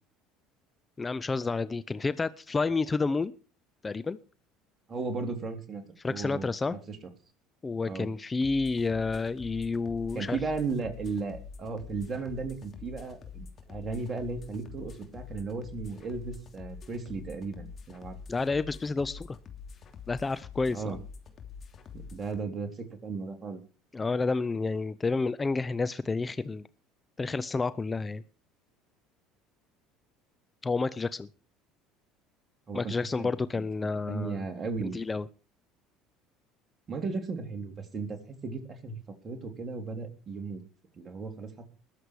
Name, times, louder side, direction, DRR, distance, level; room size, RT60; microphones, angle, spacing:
voice 1, 1.0-3.3 3.8-4.2 6.0-6.8 7.6-10.4 18.3-19.4 20.1-21.0 23.9-26.7 27.2-28.2 30.6-31.3 32.7-34.4 34.8-35.3, left 4 dB, 25° left, 15 dB, 0.7 m, -30 dB
voice 2, 4.9-5.8 6.1-7.0 7.9-8.1 10.1-18.2 20.7-21.0 21.9-23.6 32.7-33.6 34.1-35.0 36.9-39.0 39.2-40.6 41.0-41.7, right 4 dB, 35° right, 5 dB, 3.6 m, -35 dB
sound 1, 8.4-22.4, left 6 dB, 45° left, 3.0 m, -46 dB
20.5 x 7.9 x 4.8 m, 0.36 s
hypercardioid pair, 75°, 0 cm